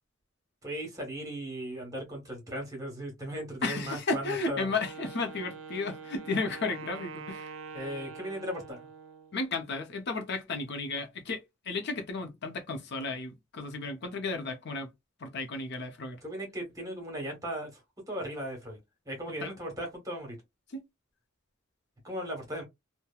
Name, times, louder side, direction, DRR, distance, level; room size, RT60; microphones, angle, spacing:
voice 1, 0.6-4.7 7.7-8.9 16.2-17.8 18.1-18.8 19.0-20.3 22.0-22.6, equal, 15° right, 1.2 m, -37 dB
voice 2, 3.6-7.6 9.3-14.9 15.2-16.2 19.4-19.5 20.7-20.8, left 3 dB, 55° left, 0.6 m, -33 dB
Wind instrument woodwind instrument, 4.5-9.4, right 5 dB, 75° right, 0.5 m, -44 dB
3.0 x 2.2 x 2.3 m
head